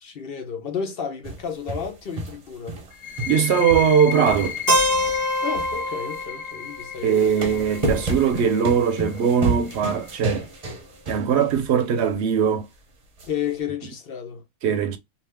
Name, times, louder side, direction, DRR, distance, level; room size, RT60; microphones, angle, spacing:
voice 1, 0.0-2.8 5.4-7.5 7.9-8.1 13.2-14.5, left 7 dB, 55° left, 1.0 m, -32 dB
sound 1, 1.2-2.9 3.2-6.3 7.0-11.7 12.0-12.1 13.2-13.3, right 2 dB, 35° right, 0.8 m, -31 dB
sound 2, 2.9-10.3, left 9 dB, 70° left, 1.3 m, -35 dB
voice 2, 3.3-4.6 7.0-10.5 11.1-12.7 14.6-15.0, right 7 dB, 65° right, 0.8 m, -20 dB
Keyboard (musical), 4.7-8.6, left 1 dB, 20° left, 1.0 m, -26 dB
2.7 x 2.5 x 3.3 m
omnidirectional pair, 1.3 m